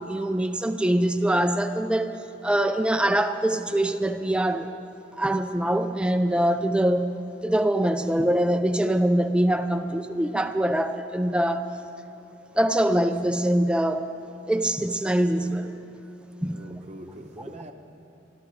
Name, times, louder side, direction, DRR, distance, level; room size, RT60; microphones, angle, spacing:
voice 1, 0.0-2.2 2.4-4.7 5.2-7.2 7.4-11.7 12.6-14.1 14.5-15.8 16.4-16.7, right 1 dB, 5° right, 8 dB, 0.4 m, -23 dB
voice 2, 16.4-17.7, right 1 dB, 35° right, 5 dB, 0.8 m, -43 dB
27.5 x 12.5 x 3.2 m, 2.9 s
head